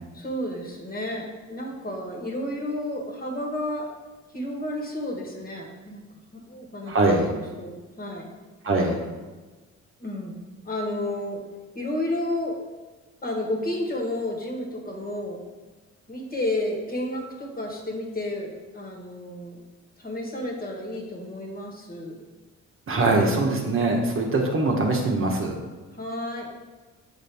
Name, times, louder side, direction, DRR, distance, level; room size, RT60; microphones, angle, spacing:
voice 1, 0.1-3.9 4.3-6.0 6.3-6.9 7.2-8.3 10.0-11.4 11.7-12.6 13.2-15.4 16.1-19.6 20.0-22.1 25.9-26.5, left 1 dB, 30° left, 0 dB, 1.5 m, -31 dB
voice 2, 6.9-7.3 8.6-9.0 22.9-25.5, right 2 dB, 45° right, 0 dB, 1.1 m, -22 dB
7.6 x 4.3 x 3.5 m, 1.3 s
cardioid pair, 90°, 30 cm